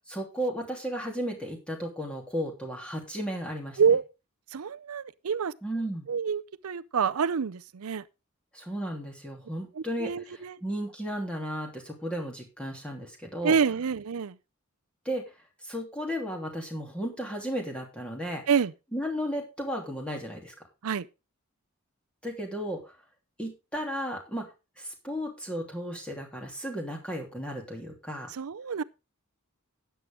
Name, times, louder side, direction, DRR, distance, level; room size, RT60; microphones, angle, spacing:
voice 1, 0.1-3.8 5.6-6.1 8.5-13.6 15.0-15.2 15.6-18.4 18.9-20.5 22.2-22.9 23.4-24.5 24.8-28.3, equal, 5° left, 3.0 m, -34 dB
voice 2, 4.5-5.5 6.1-8.0 9.8-10.6 13.4-14.4 18.5-18.7 20.8-21.1 28.3-28.8, right 6 dB, 80° right, 0.5 m, -27 dB
13.0 x 9.4 x 3.6 m
head